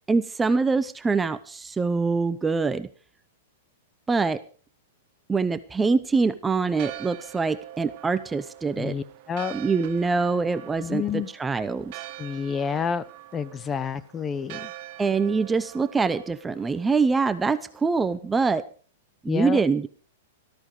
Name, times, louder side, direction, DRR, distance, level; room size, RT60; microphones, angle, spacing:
voice 1, 0.1-2.9 4.1-4.4 5.3-9.0 9.5-11.0 11.4-12.0 15.0-18.6 19.2-19.9, right 4 dB, 10° right, 13 dB, 0.7 m, -24 dB
Church bell, 6.6-18.2, right 15 dB, 50° right, 1.1 m, -44 dB
voice 2, 8.8-9.6 10.8-11.3 12.2-13.0 13.3-14.7 19.3-19.6, left 7 dB, 20° left, 16 dB, 0.8 m, -29 dB
13.5 x 13.5 x 4.9 m, 0.39 s
hypercardioid pair, 135°, 0 cm